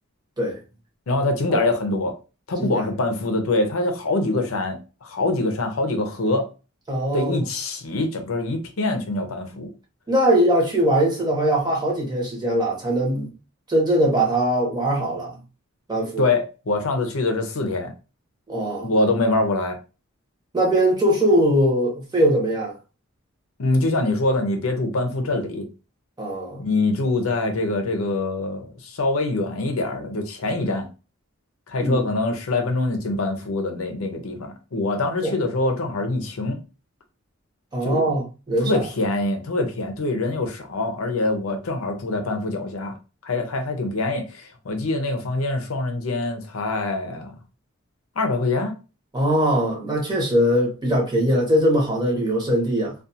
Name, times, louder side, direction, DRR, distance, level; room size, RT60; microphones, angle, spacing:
voice 1, 1.1-2.2 2.5-6.5 7.1-9.7 16.2-17.9 18.8-19.8 23.6-25.7 26.6-30.9 31.7-36.6 37.8-38.1 38.7-42.9 43.2-47.3 48.2-48.7, left 2 dB, 75° left, 0.6 m, -24 dB
voice 2, 6.9-7.4 10.1-13.3 13.7-15.3 15.9-16.3 18.5-18.9 20.5-22.7 26.2-26.6 31.8-32.0 35.2-35.3 37.7-38.8 49.1-52.9, right 1 dB, 20° right, 0.9 m, -21 dB
2.4 x 2.3 x 2.7 m
head